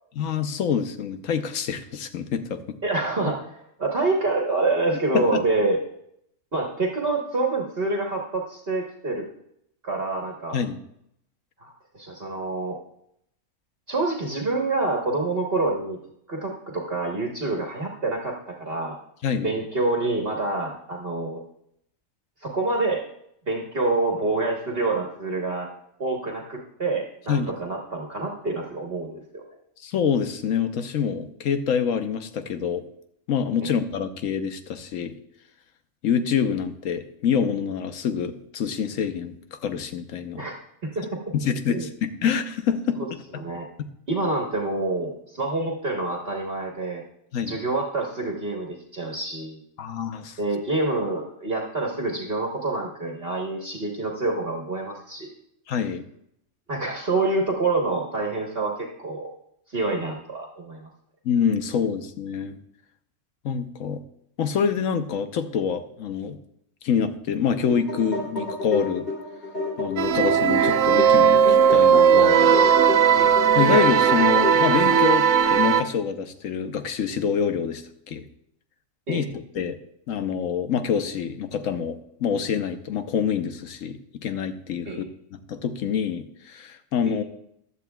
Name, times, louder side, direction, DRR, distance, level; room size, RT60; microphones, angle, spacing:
voice 1, 0.2-2.8 3.3-3.4 5.1-5.4 10.5-10.8 19.2-19.5 27.3-27.5 29.8-32.8 33.3-35.2 36.0-40.4 41.3-43.1 43.3-43.4 43.8-43.9 47.3-47.6 49.8-50.4 55.7-56.1 61.2-62.6 63.4-64.0 64.4-66.4 66.8-69.1 69.8-72.5 73.5-78.2 79.1-79.2 79.5-79.8 80.1-85.0 85.3-87.2, left 7 dB, 90° left, 8 dB, 1.2 m, -26 dB
voice 2, 2.8-3.5 3.8-5.8 6.5-9.2 9.8-10.6 11.6-12.8 13.9-16.0 16.3-19.0 19.4-21.4 22.4-23.0 23.5-25.7 26.0-29.4 33.6-33.7 40.4-40.5 40.8-41.2 41.7-41.9 43.0-43.1 43.3-43.7 44.1-47.0 47.5-49.6 50.4-55.4 56.7-59.3 59.7-60.9 73.1-73.3 79.1-79.2 84.8-85.0 87.1-87.2, right 2 dB, 50° right, -1 dB, 1.4 m, -27 dB
sound 1, 67.4-75.0, left 3 dB, 55° left, 3.2 m, -31 dB
sound 2, 70.0-75.8, right 7 dB, 85° right, 1.1 m, -17 dB
15.0 x 11.0 x 2.3 m, 0.74 s
omnidirectional pair, 1.3 m